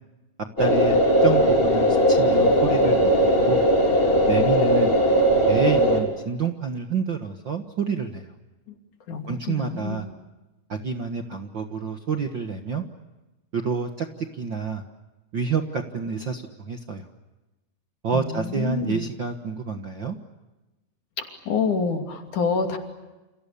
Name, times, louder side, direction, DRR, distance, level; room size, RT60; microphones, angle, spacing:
sound 1, 0.6-6.0, equal, 15° left, 4.5 m, -19 dB
voice 1, 0.6-3.6 4.3-4.9 5.5-8.3 9.3-10.1 10.7-12.8 13.5-14.8 15.3-17.1 18.0-20.1, right 5 dB, 50° right, 5 dB, 1.6 m, -28 dB
voice 2, 9.1-10.0 18.1-19.0 21.2-22.8, left 5 dB, 65° left, 4 dB, 4.3 m, -27 dB
29.5 x 28.5 x 7.0 m, 1.1 s
omnidirectional pair, 3.8 m